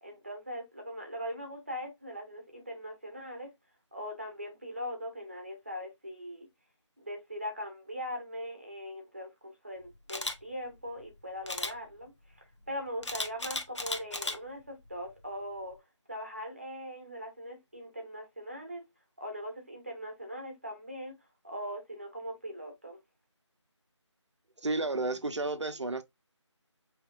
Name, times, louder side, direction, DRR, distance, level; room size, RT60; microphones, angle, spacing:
voice 1, 0.0-3.5 3.9-6.5 7.0-15.8 16.1-18.8 19.2-21.2 21.4-23.0, equal, 25° right, 0.9 m, -41 dB
Camera, 10.1-10.3 11.5-11.7 13.0-14.4 14.9-15.1, left 2 dB, 65° left, 1.1 m, -35 dB
voice 2, 24.6-26.0, right 2 dB, 65° right, 0.9 m, -31 dB
5.8 x 3.1 x 2.5 m
figure-of-eight pair, 175°, 16 cm